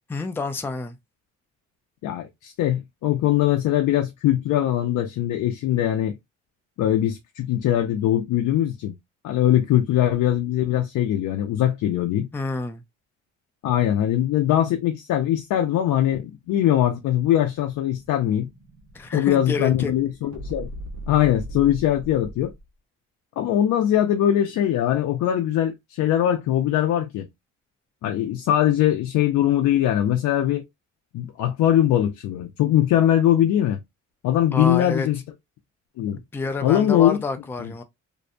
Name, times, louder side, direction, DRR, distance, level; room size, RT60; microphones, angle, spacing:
voice 1, 0.1-1.0 12.3-12.8 18.9-19.9 34.5-35.1 36.1-37.8, left 4 dB, 10° left, 0.3 m, -28 dB
voice 2, 2.0-6.2 6.8-8.9 9.2-12.3 13.6-18.5 19.1-20.7 21.1-22.5 23.4-27.3 28.0-30.6 31.1-33.8 34.2-35.2 36.0-36.2 36.6-37.2 37.6-37.7, left 11 dB, 75° left, 0.5 m, -21 dB
Explosion, 17.9-22.7, right 1 dB, 65° right, 0.9 m, -40 dB
2.6 x 2.1 x 2.5 m
cardioid pair, 90°, 30 cm